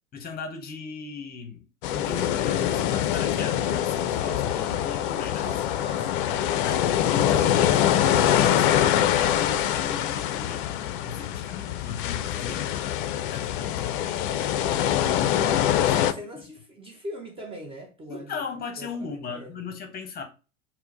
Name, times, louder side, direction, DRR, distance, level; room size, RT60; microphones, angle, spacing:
voice 1, 0.1-1.6 1.9-5.5 6.6-10.6 11.0-12.7 13.3-14.0 14.8-16.2 18.1-20.2, left 5 dB, 25° left, 0.9 m, -37 dB
sound 1, 1.8-16.1, left 11 dB, 45° left, 0.4 m, -24 dB
voice 2, 5.4-6.2 7.7-8.3 15.9-18.4 18.8-19.7, equal, 15° right, 0.7 m, -41 dB
4.3 x 2.1 x 4.0 m
figure-of-eight pair, 85°, 38 cm